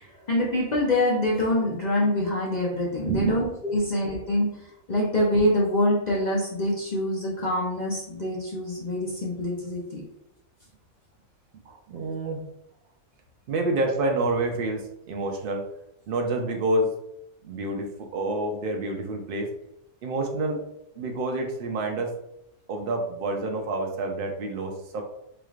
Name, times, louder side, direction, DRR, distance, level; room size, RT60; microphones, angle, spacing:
voice 1, 0.0-4.6 4.9-10.0, left 1 dB, 45° left, -4 dB, 0.6 m, -25 dB
voice 2, 11.7-12.5 13.5-15.7 16.1-16.9 17.4-19.5 20.0-20.6 21.0-22.1 22.7-25.0, right 2 dB, 85° right, 3 dB, 0.5 m, -28 dB
3.9 x 3.2 x 2.4 m, 0.82 s
omnidirectional pair, 1.5 m